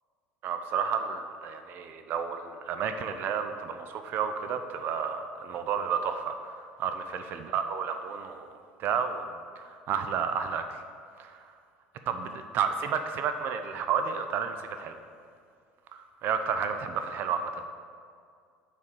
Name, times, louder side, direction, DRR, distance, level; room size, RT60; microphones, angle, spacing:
voice 1, 0.4-8.5 8.8-9.2 9.6-10.8 11.2-11.5 12.1-15.0 15.9-17.6, right 7 dB, 45° right, 8 dB, 0.5 m, -31 dB
7.1 x 4.1 x 6.3 m, 2.2 s
figure-of-eight pair, 65°, 5 cm